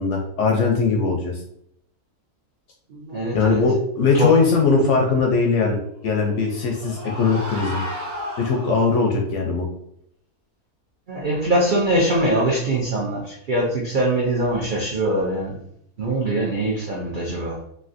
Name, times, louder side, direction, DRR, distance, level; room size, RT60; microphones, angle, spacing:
voice 1, 0.0-1.4 3.3-7.8 8.4-9.7, left 4 dB, 70° left, 1 dB, 0.7 m, -20 dB
voice 2, 2.9-3.6 4.1-4.4 11.1-15.6 16.0-17.6, right 1 dB, 70° right, -3 dB, 0.5 m, -22 dB
sound 1, 6.3-9.1, equal, 35° right, 0.9 m, -33 dB
3.2 x 2.5 x 2.5 m, 0.72 s
omnidirectional pair, 1.6 m